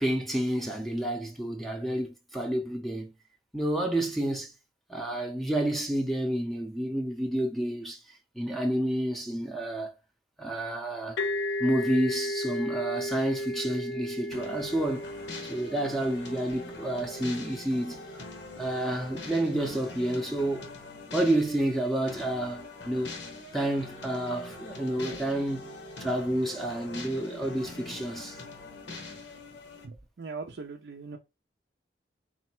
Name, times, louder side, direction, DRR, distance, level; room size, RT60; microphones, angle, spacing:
voice 1, 0.0-3.1 3.5-4.5 4.9-8.0 8.4-9.9 10.4-11.2 11.6-15.1 15.5-18.0 18.6-20.8 21.1-23.2 23.5-25.7 26.0-28.4, right 1 dB, ahead, 0.6 m, -29 dB
sound 1, 11.2-18.7, left 1 dB, 70° left, 0.5 m, -35 dB
sound 2, 14.3-29.9, left 2 dB, 90° left, 1.1 m, -43 dB
voice 2, 29.8-31.2, right 4 dB, 70° right, 0.5 m, -41 dB
4.0 x 2.1 x 4.3 m
head